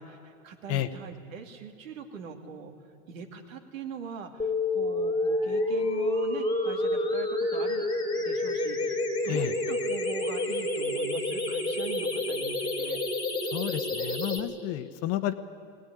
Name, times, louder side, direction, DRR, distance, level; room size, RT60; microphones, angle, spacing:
voice 1, 0.0-2.7 3.1-7.9 8.1-13.0, right 5 dB, 75° right, 4 dB, 2.7 m, -42 dB
sound 1, 4.4-14.4, left 2 dB, 10° left, 2.2 m, -29 dB
voice 2, 13.5-15.3, left 13 dB, 40° left, 11 dB, 1.1 m, -31 dB
21.0 x 17.5 x 10.0 m, 2.4 s
hypercardioid pair, 130°, 40 cm